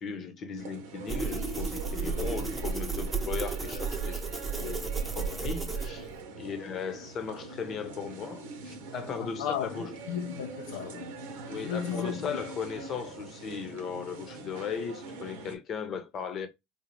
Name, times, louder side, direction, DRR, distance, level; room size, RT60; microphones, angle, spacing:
voice 1, 0.0-4.2 4.6-6.1 6.4-10.0 11.5-16.5, left 6 dB, 40° left, 0.9 m, -37 dB
sound 1, 0.6-15.5, right 3 dB, 75° right, 0.9 m, -43 dB
sound 2, 1.1-6.2, right 4 dB, 15° right, 0.9 m, -33 dB
voice 2, 9.2-11.2 11.5-12.4, left 8 dB, 75° left, 0.5 m, -35 dB
4.0 x 2.3 x 3.0 m
hypercardioid pair, 90°, 0 cm